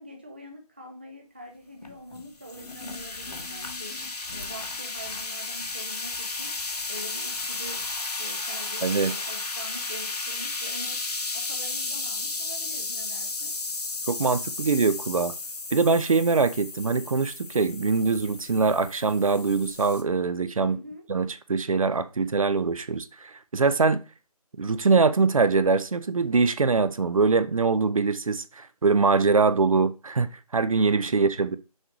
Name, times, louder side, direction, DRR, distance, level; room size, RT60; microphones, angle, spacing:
voice 1, 0.0-4.0 4.3-6.5 6.9-7.8 8.2-11.0 11.3-13.5 20.6-21.0 31.0-31.2, equal, 15° right, 0.5 m, -44 dB
sound 1, 1.8-20.0, left 3 dB, 75° left, 1.3 m, -34 dB
voice 2, 8.8-9.1 14.1-15.3 15.7-20.8 21.1-24.0 24.6-31.6, right 4 dB, 60° right, 0.6 m, -23 dB
6.4 x 3.1 x 5.0 m
figure-of-eight pair, 170°, 20 cm